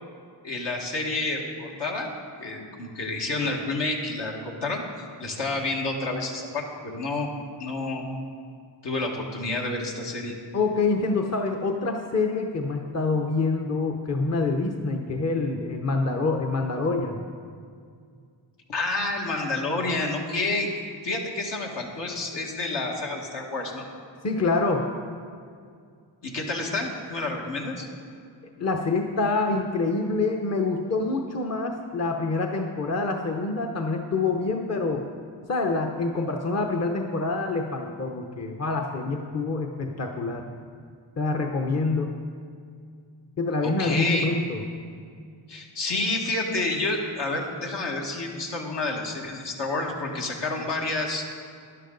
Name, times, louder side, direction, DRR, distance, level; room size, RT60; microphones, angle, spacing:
voice 1, 0.4-2.1 2.4-4.8 5.2-7.3 7.6-8.0 8.8-10.3 18.7-20.7 21.0-23.9 26.2-27.9 43.6-44.3 45.5-51.2, left 2 dB, 70° left, 0 dB, 1.8 m, -29 dB
voice 2, 10.5-17.2 24.2-24.9 28.6-35.0 35.5-40.4 41.2-42.1 43.4-44.6, left 3 dB, 35° left, 3 dB, 0.8 m, -26 dB
12.5 x 11.0 x 3.9 m, 2.2 s
cardioid pair, 90°, 43 cm